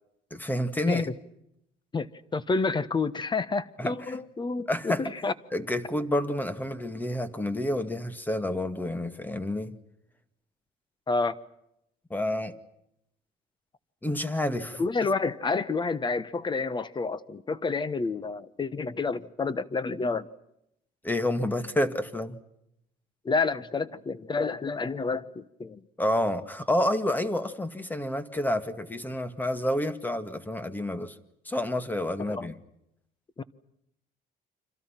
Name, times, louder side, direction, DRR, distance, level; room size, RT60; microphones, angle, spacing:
voice 1, 0.3-1.1 3.8-4.2 4.7-5.1 5.5-9.8 12.1-12.6 14.0-14.8 21.0-22.4 26.0-31.2 31.5-32.5, left 1 dB, 10° left, 2.1 m, -29 dB
voice 2, 1.9-5.3 11.1-11.4 14.8-20.3 23.2-25.8 32.4-32.5 33.4-33.5, left 4 dB, 25° left, 1.3 m, -29 dB
30.0 x 26.0 x 5.9 m
cardioid pair, 110°, 17 cm